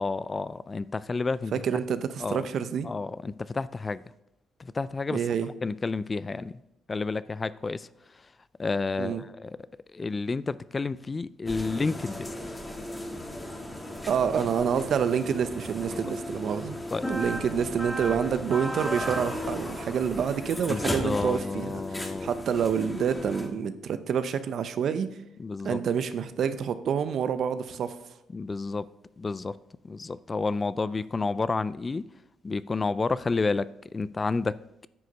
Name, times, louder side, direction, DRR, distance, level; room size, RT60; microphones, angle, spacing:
voice 1, 0.0-1.5 2.2-2.5 2.8-4.0 4.6-5.2 5.6-6.5 6.9-7.9 8.6-9.5 9.9-12.6 15.9-16.1 16.9-17.1 20.7-22.3 25.4-25.8 28.3-28.9 29.2-29.5 29.8-32.1 32.4-34.6, left 3 dB, 30° left, 0.3 m, -30 dB
voice 2, 1.5-2.9 5.1-5.5 9.0-9.2 14.1-16.8 17.1-25.1 25.6-28.0, right 7 dB, 65° right, 0.7 m, -28 dB
sound 1, 11.5-23.5, equal, 10° left, 1.5 m, -35 dB
9.4 x 6.5 x 5.3 m
cardioid pair, 90°, 0 cm